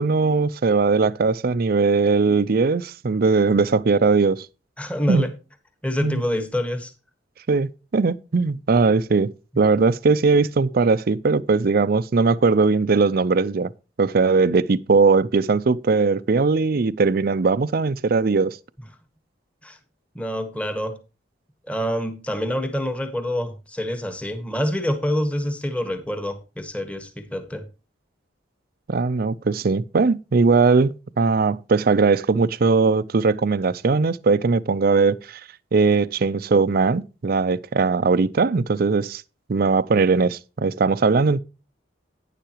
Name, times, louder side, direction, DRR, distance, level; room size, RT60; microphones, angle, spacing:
voice 1, 0.0-4.5 5.1-5.3 6.0-6.2 7.5-9.3 9.6-13.7 14.0-18.6 28.9-35.4 35.7-39.2 39.5-41.4, right 4 dB, 55° right, 0.5 m, -19 dB
voice 2, 4.8-5.3 5.8-6.9 19.6-19.8 20.1-21.0 21.7-27.6, equal, 5° left, 1.3 m, -26 dB
11.5 x 9.9 x 2.9 m
head